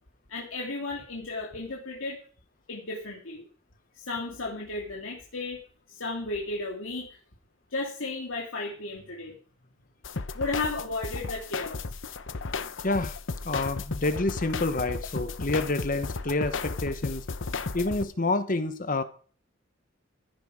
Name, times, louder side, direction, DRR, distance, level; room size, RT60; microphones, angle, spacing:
voice 1, 0.3-2.2 2.7-3.5 3.9-5.6 5.9-7.2 7.7-9.4 10.3-11.8, left 2 dB, 90° left, -1 dB, 2.6 m, -34 dB
sound 1, 10.0-18.0, left 4 dB, 70° left, 0.9 m, -34 dB
voice 2, 12.8-13.2 13.4-17.2 17.7-19.0, left 2 dB, 45° left, 10 dB, 1.1 m, -28 dB
15.5 x 10.0 x 4.9 m, 0.43 s
head